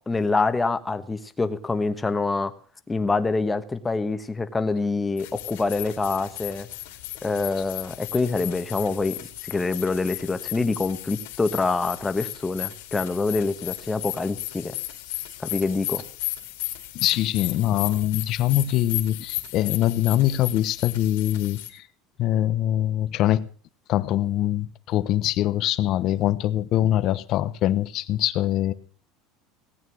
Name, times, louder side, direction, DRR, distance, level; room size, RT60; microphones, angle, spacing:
voice 1, 0.1-2.5 2.9-6.7 7.2-14.7 15.4-16.0, left 3 dB, 10° left, 1.3 m, -26 dB
sound 1, 5.2-21.7, left 16 dB, 85° left, 2.9 m, -35 dB
voice 2, 16.9-21.9 22.2-23.5 23.9-28.7, left 13 dB, 50° left, 1.0 m, -23 dB
18.0 x 9.1 x 6.3 m
supercardioid pair, 140°, 0 cm